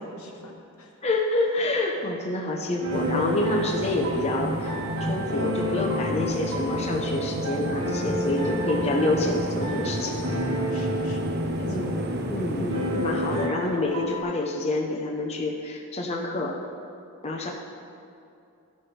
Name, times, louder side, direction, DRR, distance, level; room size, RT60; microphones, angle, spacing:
voice 1, 0.0-1.0 8.3-8.4 9.4-9.5 10.7-11.9, left 1 dB, 80° left, 0 dB, 1.2 m, -44 dB
voice 2, 1.0-10.2 11.6-12.0 12.3-16.6 17.2-17.5, left 2 dB, 30° left, -1 dB, 0.7 m, -27 dB
sound 1, 2.8-14.2, equal, 65° right, 1.4 m, -32 dB
sound 2, 2.9-13.5, right 1 dB, 50° right, 0.7 m, -31 dB
14.0 x 6.0 x 3.3 m, 2.5 s
head